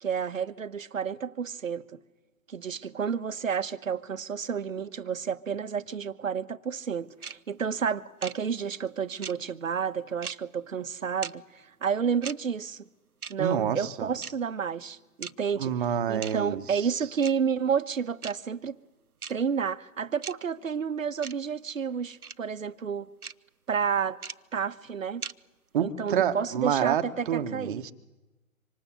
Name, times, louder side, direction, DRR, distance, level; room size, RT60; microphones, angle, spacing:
voice 1, 0.0-1.8 2.5-12.9 13.3-15.7 16.1-18.8 19.3-23.1 23.7-24.2 24.5-25.2 25.8-27.8, right 7 dB, 65° right, 1.3 m, -30 dB
sound 1, 7.2-7.3 8.2-8.3 9.2-9.3 10.2-10.3 11.2-11.3 12.2-12.3 13.2-13.3 14.2-14.3 15.2-15.3 16.2-16.3 17.2-17.3 18.2-18.3 19.2-19.3 20.2-20.3 21.2-21.3 22.2-22.3 23.2-23.3 24.2-24.3 25.2-25.3, right 6 dB, 90° right, 0.8 m, -37 dB
voice 2, 13.4-14.1 15.6-16.8 25.7-27.9, right 9 dB, 35° right, 1.5 m, -28 dB
25.5 x 25.5 x 8.0 m
figure-of-eight pair, 130°, 43 cm